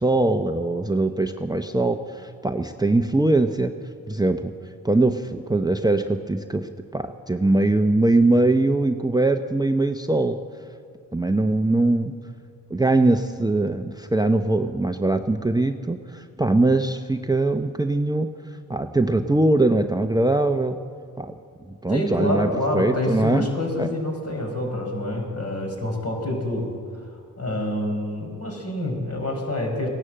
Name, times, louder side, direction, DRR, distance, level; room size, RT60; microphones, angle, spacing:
voice 1, 0.0-3.7 4.1-4.5 4.8-10.4 11.1-12.1 12.7-18.3 18.7-20.8 21.2-21.3 21.8-23.5 23.8-23.9, right 2 dB, 10° right, 8 dB, 0.8 m, -21 dB
voice 2, 21.9-27.1 27.4-29.9, left 1 dB, 35° left, 1 dB, 5.1 m, -27 dB
17.0 x 11.0 x 7.6 m, 2.2 s
hypercardioid pair, 40°, 41 cm